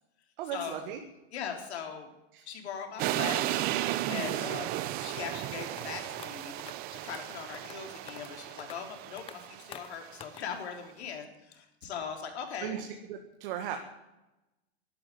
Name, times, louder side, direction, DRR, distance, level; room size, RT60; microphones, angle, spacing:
voice 1, 0.4-1.0 2.3-2.4 4.0-4.4 12.6-13.8, right 9 dB, 55° right, 5 dB, 1.8 m, -37 dB
voice 2, 1.3-2.1 2.5-3.6 4.1-4.7 5.0-6.5 6.9-12.8, left 7 dB, 80° left, 3 dB, 3.9 m, -40 dB
sound 1, 3.0-10.1, right 14 dB, 30° right, 0.7 m, -34 dB
sound 2, 5.8-5.9 6.2-6.3 6.6-6.7 7.1-7.2 7.5-7.8 8.1-8.3 8.6-8.8 9.2-9.4 9.7-9.9 10.2-10.4, left 10 dB, 15° left, 0.6 m, -46 dB
12.0 x 11.5 x 9.4 m, 0.97 s
supercardioid pair, 150°, 32 cm